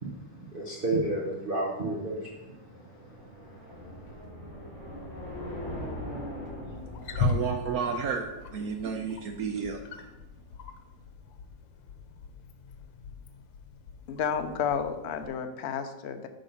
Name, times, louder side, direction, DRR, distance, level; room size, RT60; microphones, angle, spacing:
voice 1, 0.0-3.0 3.4-4.2, right 2 dB, 35° right, -5 dB, 1.2 m, -33 dB
sound 1, 2.0-9.3, left 1 dB, 40° left, 2.8 m, -41 dB
Wild animals, 6.8-15.3, left 4 dB, 85° left, 1.5 m, -38 dB
voice 2, 7.2-9.8, right 6 dB, 70° right, 4 dB, 0.9 m, -32 dB
voice 3, 14.1-16.3, left 7 dB, 70° left, 7 dB, 0.6 m, -31 dB
8.8 x 4.1 x 5.4 m, 1.0 s
omnidirectional pair, 2.0 m